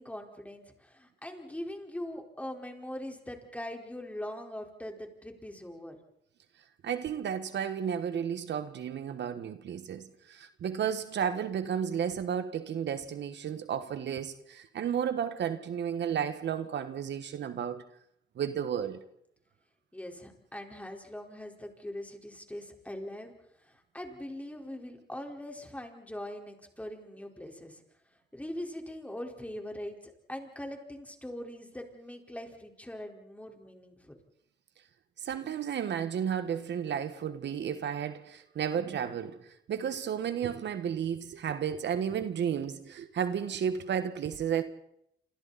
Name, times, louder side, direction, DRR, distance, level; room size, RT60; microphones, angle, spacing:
voice 1, 0.0-6.0 19.9-23.3 23.6-27.8 28.3-34.2, left 1 dB, 5° left, 4.7 m, -42 dB
voice 2, 6.8-17.8 18.4-19.0 35.2-44.6, right 8 dB, 65° right, 1.6 m, -33 dB
28.0 x 28.0 x 4.3 m
cardioid pair, 90°, 20 cm